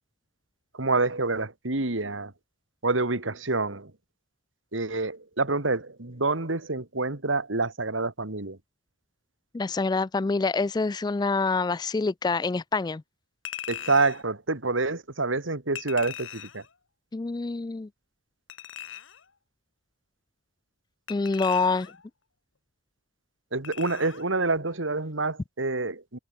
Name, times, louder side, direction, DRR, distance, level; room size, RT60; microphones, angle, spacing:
voice 1, 0.7-2.3 2.8-3.9 4.7-8.6 13.7-16.6 23.5-26.2, right 3 dB, 80° right, 2.3 m, -27 dB
voice 2, 9.5-13.0 17.1-17.9 21.1-21.9, left 4 dB, 20° left, 0.3 m, -26 dB
Chink clink, 13.4-14.2 15.7-16.7 18.5-19.2 21.1-22.1 23.6-24.3 24.6-24.8, left 9 dB, 85° left, 2.1 m, -40 dB
head